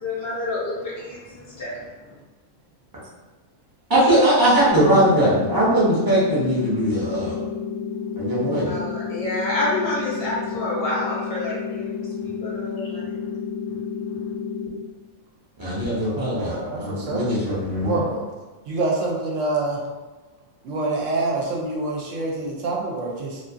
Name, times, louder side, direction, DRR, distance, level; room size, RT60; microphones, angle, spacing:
voice 1, 0.0-1.9 8.6-12.0 12.2-13.2, left 2 dB, 70° left, -6 dB, 0.5 m, -28 dB
voice 2, 3.9-7.4 8.2-8.8 15.6-18.0, right 1 dB, 25° right, -8 dB, 0.5 m, -20 dB
sound 1, 4.7-14.7, left 6 dB, 85° left, 1.0 m, -31 dB
voice 3, 16.3-17.2 17.8-18.3 18.7-19.8 20.6-23.4, right 2 dB, 70° right, -2 dB, 0.9 m, -26 dB
2.6 x 2.4 x 2.4 m, 1.2 s
omnidirectional pair, 1.5 m